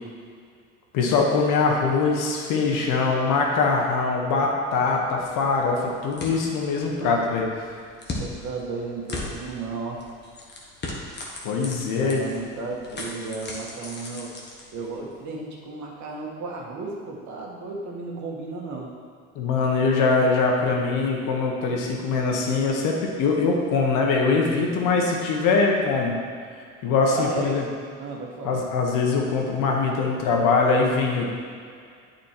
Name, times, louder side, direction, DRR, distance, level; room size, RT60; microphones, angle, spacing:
voice 1, 0.9-7.4 11.4-12.2 19.3-26.1 26.8-27.6 28.4-31.3, left 4 dB, 65° left, 0 dB, 1.5 m, -22 dB
sound 1, 4.8-15.1, left 2 dB, 30° left, 1.7 m, -39 dB
voice 2, 8.0-10.0 12.0-14.4 14.7-18.9 27.1-27.6 28.0-28.6, right 3 dB, 55° right, -1 dB, 1.7 m, -34 dB
8.6 x 4.5 x 4.6 m, 2.2 s
supercardioid pair, 85°, 35 cm